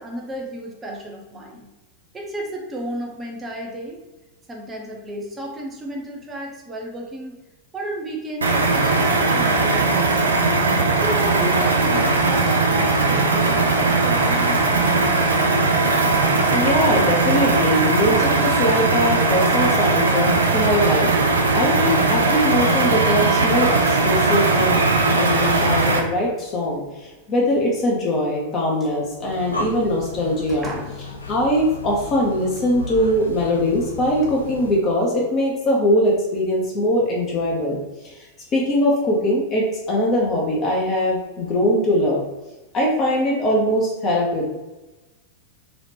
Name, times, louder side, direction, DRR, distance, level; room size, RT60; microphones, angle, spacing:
voice 1, 0.0-1.7 2.1-4.0 4.5-7.3 7.7-10.2 11.0-15.0 28.8-28.9 30.5-31.0 38.4-38.5, right 1 dB, 20° right, 0 dB, 0.7 m, -33 dB
sound 1, 8.4-26.0, right 3 dB, 70° right, 0.4 m, -19 dB
voice 2, 16.5-30.7 31.3-37.8 38.0-38.1 38.5-42.2 42.7-44.5, left 1 dB, 30° left, -3 dB, 0.7 m, -21 dB
Breathing, 29.1-34.9, left 3 dB, 75° left, 0.3 m, -35 dB
3.0 x 2.4 x 3.3 m, 1.1 s
figure-of-eight pair, 90°, 0 cm